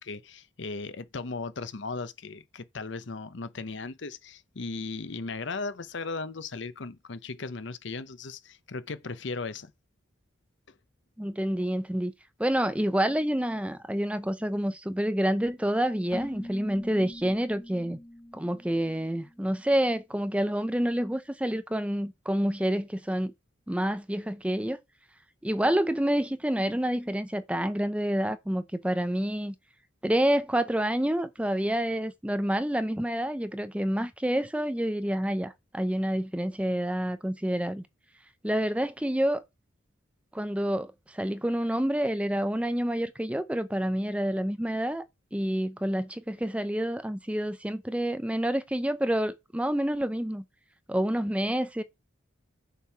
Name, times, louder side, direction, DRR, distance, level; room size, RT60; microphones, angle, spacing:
voice 1, 0.0-9.7, left 3 dB, 65° left, 0.8 m, -37 dB
voice 2, 11.2-12.1 12.4-18.0 18.3-23.3 23.7-24.8 25.4-29.5 30.0-37.8 38.4-39.4 40.3-45.0 45.3-50.4 50.9-51.8, right 1 dB, 5° right, 0.5 m, -28 dB
Keyboard (musical), 16.1-19.7, left 1 dB, 15° left, 1.0 m, -44 dB
6.8 x 4.6 x 5.8 m
head